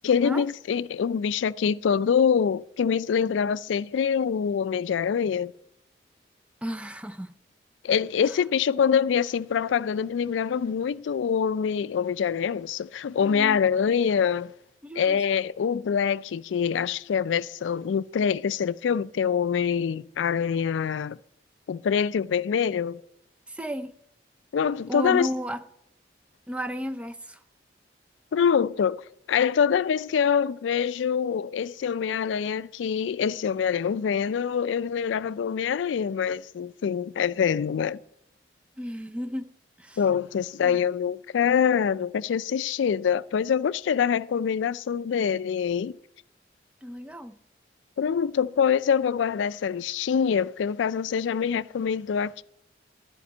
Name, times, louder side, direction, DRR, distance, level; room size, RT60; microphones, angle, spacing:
voice 1, 0.0-5.5 7.8-14.5 15.0-21.2 21.7-23.0 24.5-25.3 28.3-38.0 40.0-46.0 48.0-52.4, left 7 dB, 90° left, 0.3 m, -25 dB
voice 2, 6.6-7.3 13.2-13.6 14.8-15.2 23.5-23.9 24.9-25.6 26.5-27.4 38.8-39.5 39.8-40.0 40.6-40.7 46.8-47.4, equal, 5° right, 0.4 m, -33 dB
12.5 x 5.2 x 8.3 m
head